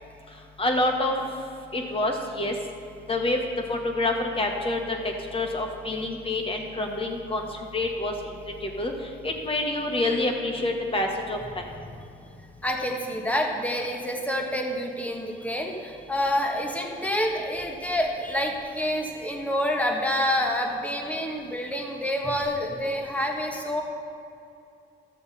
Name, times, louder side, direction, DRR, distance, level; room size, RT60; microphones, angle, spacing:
voice 1, 0.6-1.1 1.7-2.5 3.1-3.4 3.7-5.0 5.3-7.4 7.7-8.1 8.8-8.9 9.2-11.6, left 2 dB, 25° left, 2 dB, 1.5 m, -27 dB
voice 2, 12.6-23.8, equal, 5° left, 1 dB, 1.5 m, -28 dB
13.5 x 6.8 x 4.2 m, 2.6 s
cardioid pair, 90°, 20 cm